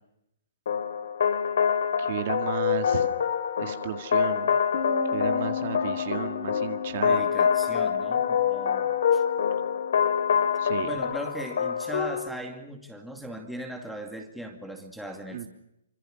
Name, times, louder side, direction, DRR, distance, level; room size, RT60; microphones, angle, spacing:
sound 1, 0.7-12.3, left 7 dB, 60° left, 3.2 m, -26 dB
voice 1, 2.0-3.1 3.6-4.6 5.1-7.3 10.6-10.9 15.3-15.5, right 10 dB, 40° right, 7 dB, 1.9 m, -33 dB
Bass guitar, 4.7-11.0, left 7 dB, 40° left, 7.9 m, -38 dB
voice 2, 7.1-9.2 10.8-15.5, right 1 dB, ahead, 5 dB, 2.4 m, -38 dB
27.0 x 25.5 x 6.4 m, 0.82 s
hypercardioid pair, 170°, 0 cm